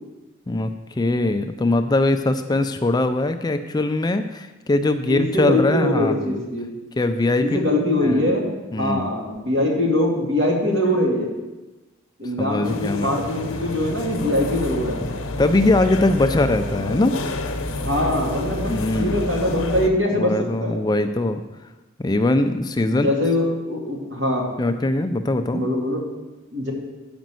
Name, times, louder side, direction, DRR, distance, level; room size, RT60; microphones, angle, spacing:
voice 1, 1.0-6.4 7.0-7.7 8.0-8.3 8.7-9.1 12.4-13.1 15.4-17.1 18.7-19.2 20.1-21.4 22.0-23.1 24.6-25.6, left 2 dB, 20° left, 8 dB, 0.4 m, -21 dB
voice 2, 5.1-6.7 7.4-8.5 8.8-11.3 12.2-15.0 17.7-20.3 20.6-20.8 22.9-24.5 25.5-26.0 26.5-26.7, left 1 dB, 60° right, -2 dB, 2.3 m, -22 dB
sound 1, 12.6-19.9, left 2 dB, 90° left, 0.9 m, -29 dB
9.1 x 5.2 x 7.5 m, 1.1 s
head